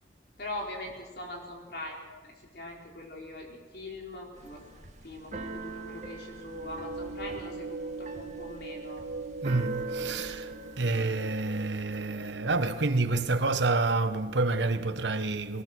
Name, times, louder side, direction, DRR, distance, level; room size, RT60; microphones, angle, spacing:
voice 1, 0.4-4.6 5.0-9.0, left 1 dB, 60° left, 4.3 m, -42 dB
Keyboard (musical), 4.3-11.1, right 3 dB, 40° right, 1.8 m, -44 dB
sound 1, 6.4-13.7, right 3 dB, 60° right, 1.3 m, -40 dB
voice 2, 9.4-10.5 10.8-15.6, right 3 dB, 80° right, 1.2 m, -28 dB
21.0 x 20.0 x 6.3 m
head